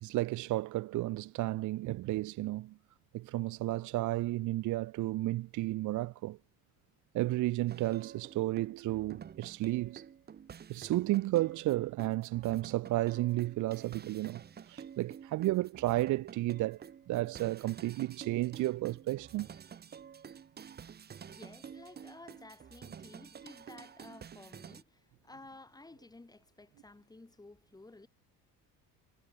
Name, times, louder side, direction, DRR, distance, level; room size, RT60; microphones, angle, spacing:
voice 1, 0.0-2.7 3.1-6.4 7.1-10.0 10.7-16.8 17.1-19.5, right 17 dB, 55° right, 0.7 m, -32 dB
sound 1, 7.7-24.8, right 7 dB, 25° right, 1.2 m, -50 dB
voice 2, 21.2-28.1, left 2 dB, 10° left, 5.2 m, -54 dB
cardioid pair, 140°, 36 cm